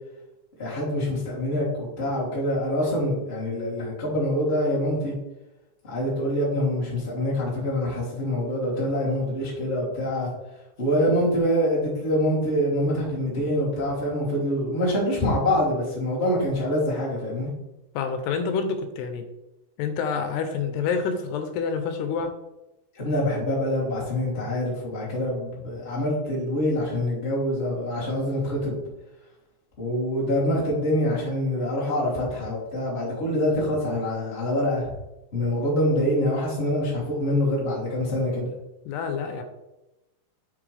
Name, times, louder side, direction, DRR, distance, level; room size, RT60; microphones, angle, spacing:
voice 1, 0.6-5.1 5.8-10.3 10.8-17.5 22.9-28.8 29.8-34.9 35.3-38.5, left 1 dB, 20° left, -7 dB, 2.4 m, -25 dB
voice 2, 18.0-19.2 19.8-22.3 38.9-39.4, left 5 dB, 85° left, 7 dB, 2.8 m, -27 dB
7.4 x 6.8 x 3.3 m, 0.98 s
omnidirectional pair, 4.7 m